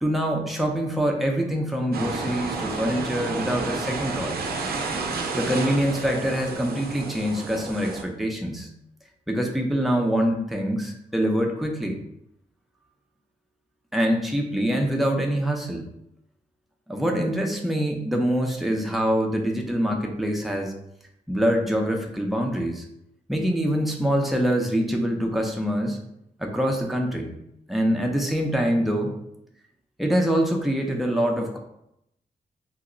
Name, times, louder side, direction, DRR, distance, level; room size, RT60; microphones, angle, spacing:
voice 1, 0.0-4.4 5.3-8.7 9.3-12.0 13.9-15.8 16.9-20.7 21.3-22.8 23.3-26.0 26.4-27.3 27.7-29.1 30.0-31.6, equal, ahead, 1 dB, 0.6 m, -24 dB
sound 1, 1.9-8.0, right 3 dB, 80° right, 0.5 m, -31 dB
2.9 x 2.2 x 3.7 m, 0.78 s
cardioid pair, 75°, 16 cm